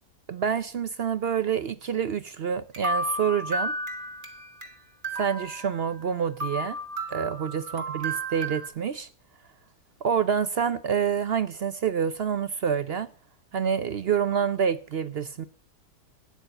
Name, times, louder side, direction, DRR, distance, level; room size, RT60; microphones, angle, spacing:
voice 1, 0.3-3.7 5.1-6.8 7.1-9.1 10.0-13.1 13.5-15.4, right 7 dB, 55° right, 0.7 m, -27 dB
sound 1, 2.7-4.7 5.0-6.1 6.4-8.7, right 1 dB, 30° right, 1.9 m, -33 dB
13.0 x 9.4 x 5.4 m
omnidirectional pair, 1.7 m